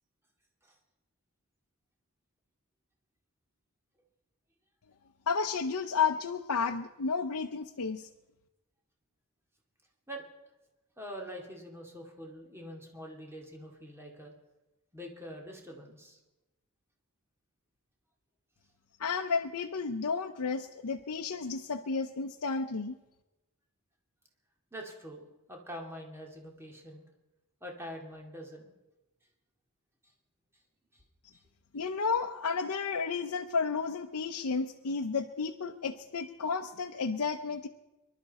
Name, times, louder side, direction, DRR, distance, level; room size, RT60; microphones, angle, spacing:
voice 1, 5.3-8.1 19.0-23.0 31.7-37.7, left 5 dB, 80° left, 3 dB, 0.7 m, -32 dB
voice 2, 11.0-14.3 14.9-16.2 24.7-27.0 27.6-28.7 30.9-31.0 31.3-31.4, equal, 10° right, 0 dB, 2.3 m, -45 dB
24.5 x 11.5 x 4.2 m, 1.0 s
head